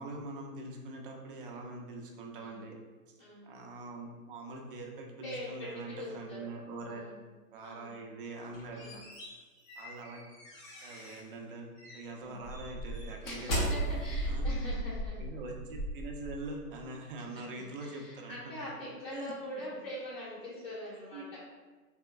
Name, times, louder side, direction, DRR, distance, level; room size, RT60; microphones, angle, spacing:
voice 1, 0.0-2.8 3.4-7.1 7.5-9.1 9.8-10.2 10.8-11.7 11.9-13.9 14.2-14.5 15.2-18.5 19.1-19.3 21.1-21.2, right 2 dB, 35° right, 1 dB, 0.5 m, -43 dB
voice 2, 2.3-2.7 3.2-3.5 5.2-6.5 6.8-7.2 7.6-8.0 8.7-9.0 12.2-12.4 13.2-15.2 17.3-21.4, equal, 65° left, -8 dB, 1.3 m, -43 dB
sound 1, 8.4-11.3 11.8-12.0 12.4-16.7, right 1 dB, 25° left, 0.6 m, -36 dB
3.4 x 2.8 x 2.3 m, 1.3 s
hypercardioid pair, 125°, 47 cm